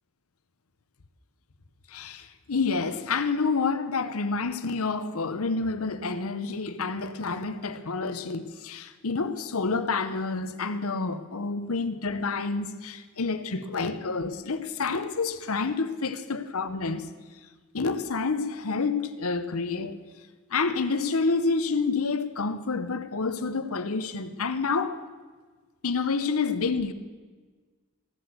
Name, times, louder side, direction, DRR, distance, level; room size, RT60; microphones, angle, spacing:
voice 1, 1.9-17.1 17.7-20.0 20.5-25.0 25.8-26.9, left 4 dB, 85° left, 0.9 m, -28 dB
16.0 x 7.8 x 8.1 m
head